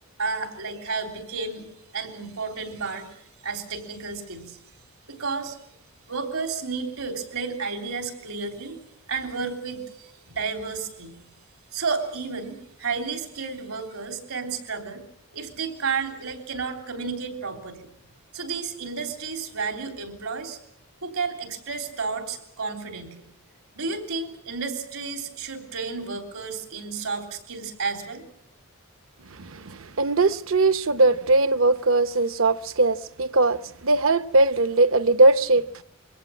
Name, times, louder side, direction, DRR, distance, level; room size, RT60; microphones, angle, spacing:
voice 1, 0.2-1.7 1.9-3.1 3.4-4.6 5.1-5.8 6.1-8.8 9.1-11.2 11.7-15.0 15.3-17.8 18.3-20.6 21.0-23.2 23.8-28.2, right 4 dB, 85° right, 3.5 m, -32 dB
voice 2, 29.4-33.6 33.8-35.6, right 2 dB, 65° right, 0.8 m, -20 dB
23.5 x 17.5 x 8.6 m
head